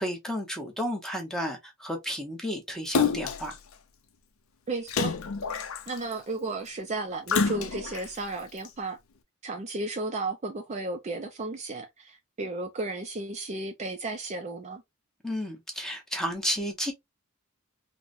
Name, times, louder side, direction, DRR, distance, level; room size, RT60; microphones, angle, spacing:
voice 1, 0.0-3.6 15.2-16.9, equal, ahead, 0.8 m, -32 dB
Splash splatter, 2.9-3.5 4.9-6.1 7.3-8.1 8.7-8.8, left 5 dB, 75° left, 0.5 m, -28 dB
voice 2, 4.7-5.1 5.9-9.0 9.4-14.8, right 2 dB, 30° right, 0.4 m, -34 dB
3.8 x 2.1 x 2.5 m
head